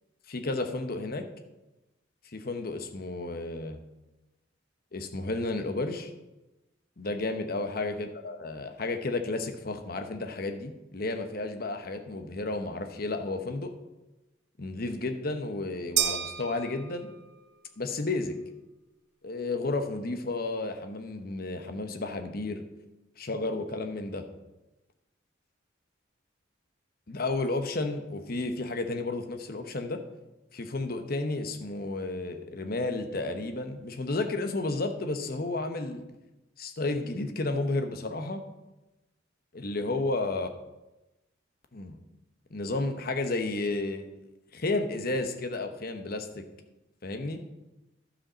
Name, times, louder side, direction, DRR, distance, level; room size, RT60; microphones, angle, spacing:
voice 1, 0.3-1.3 2.3-3.8 4.9-6.1 7.0-13.7 14.6-17.1 17.8-18.4 19.2-22.6 23.2-24.2 27.1-30.0 30.5-36.0 36.6-38.4 39.5-40.5 41.7-42.0 42.5-44.1 44.5-46.4 47.0-47.4, left 2 dB, 50° left, 6 dB, 0.9 m, -32 dB
sound 1, 16.0-17.4, right 10 dB, 60° right, 0.6 m, -31 dB
11.5 x 5.1 x 6.2 m, 1.0 s
head